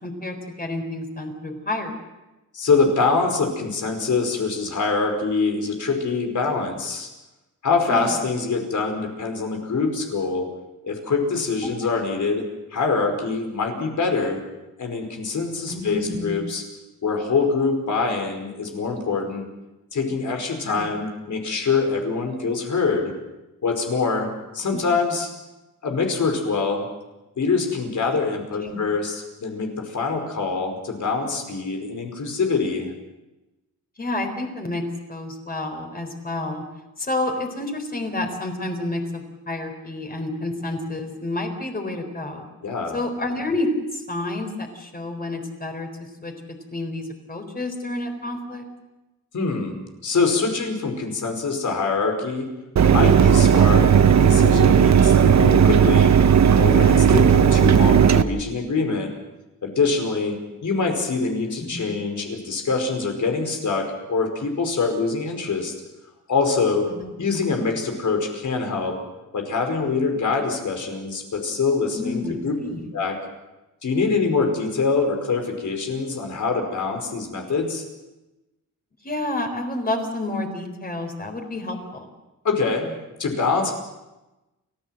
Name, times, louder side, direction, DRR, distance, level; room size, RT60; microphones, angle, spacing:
voice 1, 0.0-1.9 7.9-8.2 15.7-16.4 20.6-21.0 24.7-24.8 28.6-28.8 34.0-34.8 35.1-36.6 37.0-42.5 42.9-45.9 46.2-46.3 46.7-48.7 53.5-53.7 58.1-58.3 61.7-61.8 66.9-67.1 71.9-72.9 79.0-82.1, left 2 dB, 30° left, 5 dB, 4.1 m, -29 dB
voice 2, 2.5-7.1 7.6-10.5 10.8-12.4 12.7-14.4 14.8-16.6 17.0-19.5 19.9-23.1 23.6-24.3 24.5-25.3 25.8-26.9 27.4-32.9 42.6-43.0 49.3-52.5 52.8-56.1 56.6-59.1 59.6-60.4 60.6-63.8 64.1-65.7 66.3-66.9 67.2-68.9 69.3-72.6 72.9-73.1 73.8-77.9 82.4-82.9 83.2-83.7, left 4 dB, 70° left, 3 dB, 5.2 m, -24 dB
Mechanisms, 52.8-58.2, right 8 dB, 60° right, 1.1 m, -15 dB
30.0 x 15.0 x 7.8 m, 1.0 s
wide cardioid pair, 150°, 31 cm